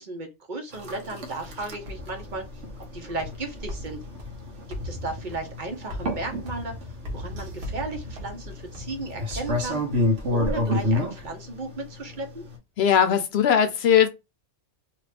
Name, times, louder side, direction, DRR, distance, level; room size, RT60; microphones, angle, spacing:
voice 1, 0.0-2.4 2.9-4.0 4.7-6.7 7.1-9.8 10.3-12.4, right 2 dB, 50° right, 0.8 m, -35 dB
sound 1, 0.7-12.6, left 1 dB, 90° right, 1.2 m, -30 dB
sound 2, 1.5-10.2, left 1 dB, 65° right, 1.1 m, -39 dB
voice 2, 12.8-14.1, left 8 dB, 70° left, 0.8 m, -19 dB
2.8 x 2.4 x 3.3 m
omnidirectional pair, 1.2 m